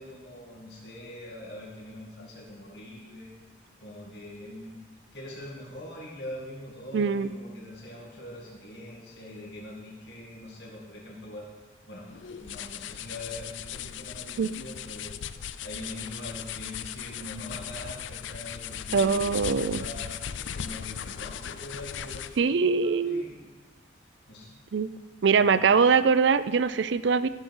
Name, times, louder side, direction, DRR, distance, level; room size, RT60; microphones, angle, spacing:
voice 1, 0.0-3.3 3.8-4.8 5.1-11.5 11.9-12.1 12.4-15.3 15.6-23.5 24.3-24.5 25.2-25.6, left 1 dB, 60° left, -3 dB, 2.0 m, -43 dB
voice 2, 6.9-7.3 14.4-14.5 18.9-19.8 22.4-23.2 24.7-24.9 25.2-27.3, right 5 dB, 75° right, 15 dB, 0.4 m, -22 dB
sound 1, 12.1-22.5, left 9 dB, 80° left, 0.4 m, -38 dB
14.0 x 6.3 x 5.4 m, 1.3 s
head